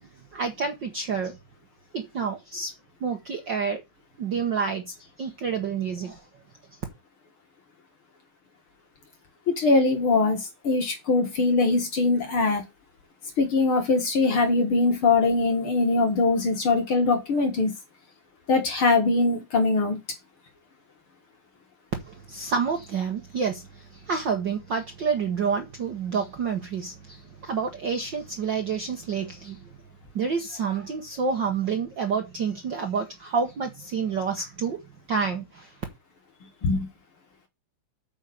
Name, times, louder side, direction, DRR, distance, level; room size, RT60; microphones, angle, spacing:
voice 1, 0.3-1.4 1.9-2.7 3.0-3.8 4.2-6.2 22.1-29.6 30.1-34.8 35.1-35.7, right 5 dB, 55° right, 1.4 m, -28 dB
voice 2, 9.5-12.6 13.4-17.7 18.5-20.0 36.6-36.9, left 3 dB, 50° left, 2.1 m, -22 dB
8.8 x 5.3 x 7.0 m
omnidirectional pair, 3.6 m